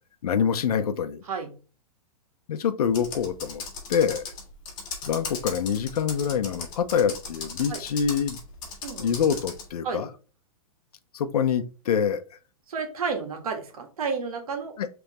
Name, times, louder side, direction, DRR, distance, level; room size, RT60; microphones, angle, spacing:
voice 1, 0.2-1.2 2.5-3.6 3.9-4.3 5.0-8.4 9.0-10.1 11.1-12.2 14.8-14.9, left 7 dB, 90° left, 0.7 m, -25 dB
Computer keyboard, 2.9-9.7, left 4 dB, 25° left, 1.4 m, -37 dB
voice 2, 12.7-14.7, right 5 dB, 75° right, 1.7 m, -31 dB
5.2 x 3.4 x 2.9 m
hypercardioid pair, 175°, 19 cm